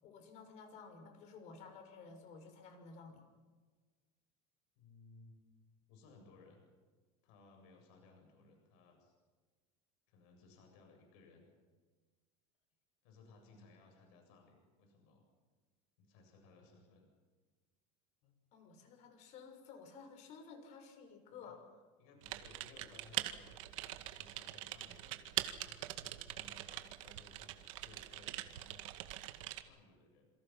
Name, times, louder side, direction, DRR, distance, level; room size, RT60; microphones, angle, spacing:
voice 1, 0.0-3.2 18.2-21.6, left 5 dB, 45° left, 6 dB, 6.1 m, -54 dB
voice 2, 4.8-5.4 5.9-6.6 7.2-9.1 10.1-11.5 13.0-15.2 16.0-17.1 21.4-21.5 22.0-28.9 29.6-30.3, left 3 dB, 65° left, 2 dB, 7.9 m, -62 dB
Typing, 22.2-29.6, right 15 dB, 85° right, 2.0 m, -43 dB
28.0 x 27.5 x 5.9 m, 1.4 s
cardioid pair, 160°, 16 cm